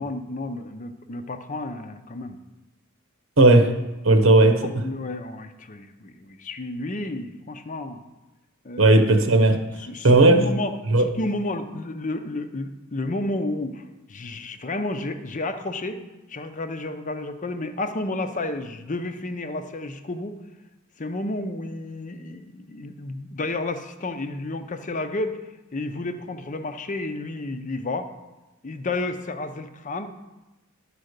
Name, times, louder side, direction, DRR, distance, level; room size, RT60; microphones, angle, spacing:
voice 1, 0.0-2.4 4.4-8.0 8.6-9.0 9.8-13.8 14.1-16.0 16.3-20.4 21.0-25.4 25.7-28.1 28.6-30.3, left 2 dB, 40° left, 8 dB, 0.7 m, -31 dB
voice 2, 3.4-3.7 4.0-4.8 8.8-9.5 10.0-10.4 10.9-11.1, right 2 dB, 85° right, 5 dB, 1.1 m, -15 dB
12.0 x 4.9 x 6.6 m, 1.1 s
head